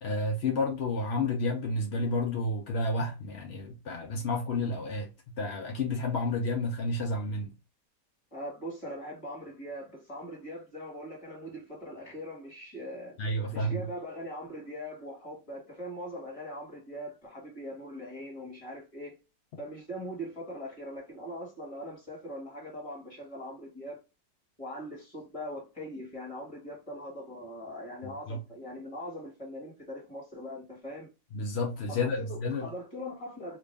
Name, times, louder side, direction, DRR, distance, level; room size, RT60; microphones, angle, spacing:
voice 1, 0.0-5.1 5.4-7.5 13.2-13.9 28.0-28.4 31.3-32.7, left 2 dB, 75° left, 0.6 m, -31 dB
voice 2, 8.3-13.2 13.5-19.2 19.6-24.0 24.6-31.1 31.9-33.6, equal, 20° left, 1.5 m, -41 dB
3.0 x 2.6 x 3.2 m
omnidirectional pair, 2.0 m